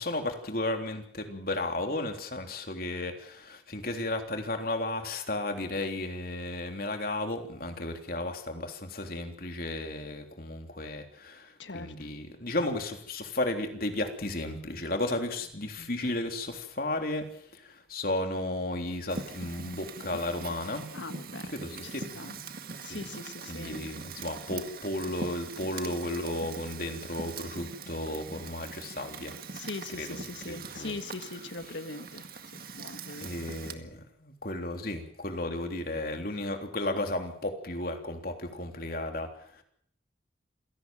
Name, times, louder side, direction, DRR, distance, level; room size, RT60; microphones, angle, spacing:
voice 1, 0.0-20.8 21.5-22.5 22.9-23.0 23.5-29.4 29.9-31.0 31.3-31.8 33.2-39.6, left 1 dB, 50° left, 4 dB, 3.5 m, -34 dB
voice 2, 11.6-11.9 20.9-21.5 21.8-22.4 22.8-23.8 29.5-32.3 32.5-33.3, left 3 dB, 85° left, 9 dB, 1.6 m, -41 dB
Fire, 19.1-33.7, right 4 dB, 50° right, 1.9 m, -42 dB
27.5 x 17.5 x 7.7 m, 0.67 s
head